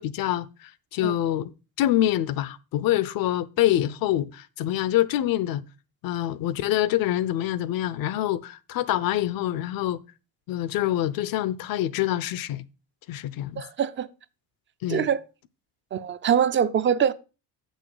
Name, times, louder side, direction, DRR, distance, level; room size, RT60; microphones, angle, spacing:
voice 1, 0.0-1.5 1.8-5.6 6.0-10.0 10.5-12.6 13.1-13.6 14.8-15.1, left 13 dB, 60° left, 0.6 m, -26 dB
voice 2, 13.6-14.1 14.9-15.2 15.9-17.1, right 8 dB, 30° right, 0.4 m, -23 dB
7.9 x 6.4 x 4.8 m
cardioid pair, 140°, 39 cm